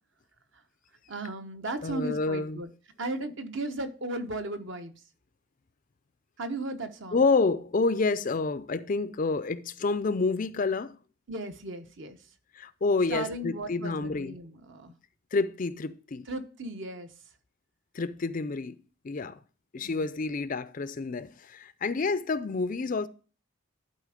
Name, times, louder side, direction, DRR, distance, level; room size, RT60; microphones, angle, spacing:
voice 1, 1.1-2.7 3.0-4.9 6.4-7.2 11.3-12.2 13.1-14.9 16.3-17.1 19.8-20.1, right 2 dB, 55° right, 1.1 m, -36 dB
voice 2, 1.8-2.6 7.1-11.0 12.5-14.4 15.3-16.3 17.9-18.8 19.0-19.4 19.7-23.1, left 3 dB, 35° left, 0.4 m, -28 dB
11.5 x 4.4 x 5.0 m
head